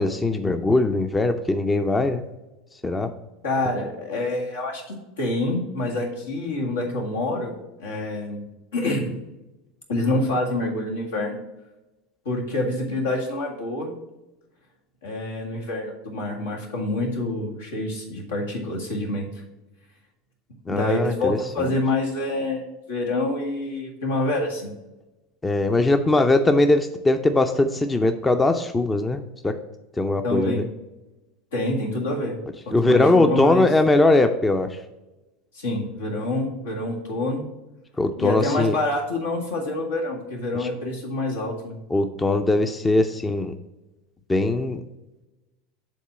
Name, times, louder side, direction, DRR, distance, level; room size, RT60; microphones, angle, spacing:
voice 1, 0.0-2.2 2.8-3.1 20.7-21.7 25.4-29.6 30.0-30.7 32.7-34.8 38.0-38.8 40.6-40.7 41.9-43.5 44.3-44.8, left 2 dB, 15° left, 8 dB, 0.5 m, -21 dB
voice 2, 3.4-7.5 7.8-8.4 8.7-9.2 9.9-11.4 12.3-13.9 15.0-19.3 20.7-24.7 30.2-30.6 31.5-32.4 32.7-33.7 35.5-37.4 38.2-41.8, left 2 dB, 80° left, -1 dB, 1.7 m, -27 dB
7.3 x 3.6 x 5.7 m, 1.0 s
hypercardioid pair, 80°, 0 cm